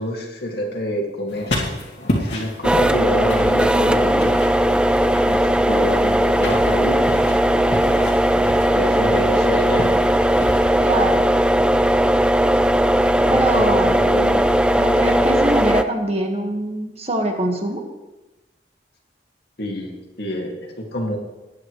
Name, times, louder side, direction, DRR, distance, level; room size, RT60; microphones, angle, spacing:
voice 1, 0.0-1.8 2.2-4.4 5.2-8.0 8.7-10.0 13.2-14.4 19.6-19.9 20.2-21.2, equal, 60° left, 0 dB, 2.2 m, -27 dB
sound 1, 1.3-10.6, left 1 dB, 75° left, 2.4 m, -31 dB
sound 2, 2.6-15.8, right 1 dB, 5° right, 0.3 m, -17 dB
voice 2, 10.8-11.2 13.3-14.0 14.7-17.8, right 1 dB, 35° right, 2 dB, 1.6 m, -23 dB
19.5 x 9.4 x 3.2 m, 1.1 s
head